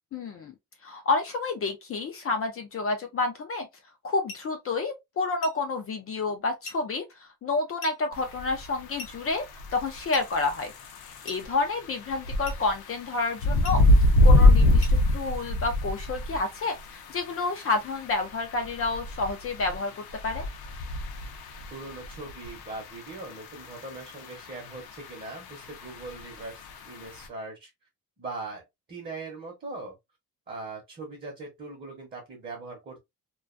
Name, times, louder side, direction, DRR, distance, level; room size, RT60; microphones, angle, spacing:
voice 1, 0.1-0.5 0.8-3.7 4.0-9.5 9.7-10.7 11.1-13.8 14.2-20.5, left 3 dB, 40° left, 0.4 m, -29 dB
sound 1, 4.3-4.5 5.4-5.7 6.6-6.9 7.8-8.1 9.0-9.3 10.1-10.4 11.3-11.5 12.5-12.7 13.6-13.9 14.8-15.1, left 2 dB, 60° left, 1.0 m, -42 dB
sound 2, 8.1-27.3, left 1 dB, 85° left, 0.6 m, -27 dB
voice 2, 21.7-27.7 28.2-28.6 28.9-30.0 30.5-33.0, right 3 dB, 30° right, 0.8 m, -40 dB
2.3 x 2.2 x 2.4 m
cardioid pair, 165°, 37 cm